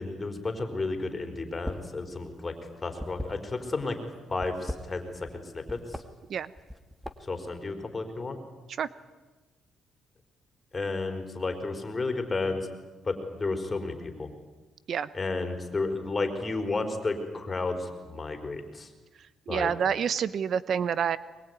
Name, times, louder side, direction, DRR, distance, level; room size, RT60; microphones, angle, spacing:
voice 1, 0.0-2.5 2.8-4.0 4.3-5.3 5.5-6.0 7.2-8.4 10.7-12.7 13.0-14.3 15.1-18.9 19.5-19.7, left 3 dB, 25° left, 5 dB, 4.5 m, -32 dB
sound 1, 1.5-2.0 2.2-3.8 4.3-5.4 5.7-6.1 6.6-7.4, left 1 dB, 5° right, 2.0 m, -38 dB
voice 2, 19.5-21.2, right 7 dB, 60° right, 17 dB, 0.8 m, -27 dB
22.0 x 22.0 x 9.7 m, 1.2 s
cardioid pair, 90°, 0 cm